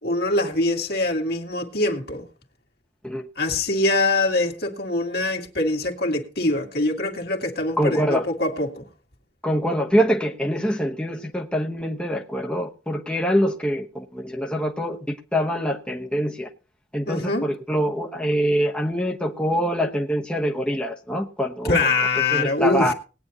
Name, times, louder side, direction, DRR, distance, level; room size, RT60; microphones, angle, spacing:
voice 1, 0.0-2.3 3.4-8.9 17.1-17.4 21.6-22.9, left 2 dB, 60° left, 2.2 m, -23 dB
voice 2, 7.8-8.2 9.4-15.0 15.3-16.5 16.9-21.8 22.3-22.9, equal, 5° left, 1.0 m, -24 dB
19.5 x 9.5 x 2.9 m
head